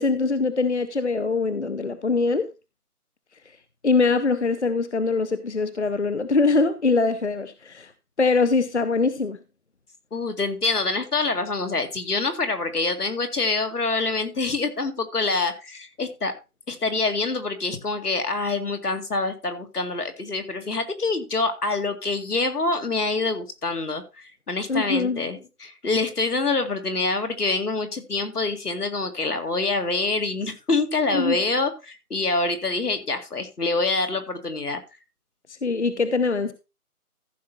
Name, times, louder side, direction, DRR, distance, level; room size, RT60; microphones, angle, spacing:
voice 1, 0.0-2.5 3.5-3.6 3.8-7.9 8.2-9.4 24.7-25.2 31.1-31.4 35.5-36.5, left 4 dB, 50° left, 0.8 m, -23 dB
voice 2, 10.1-16.3 16.7-34.8, left 3 dB, 85° left, 2.4 m, -26 dB
14.5 x 5.8 x 4.2 m
figure-of-eight pair, 180°, 45 cm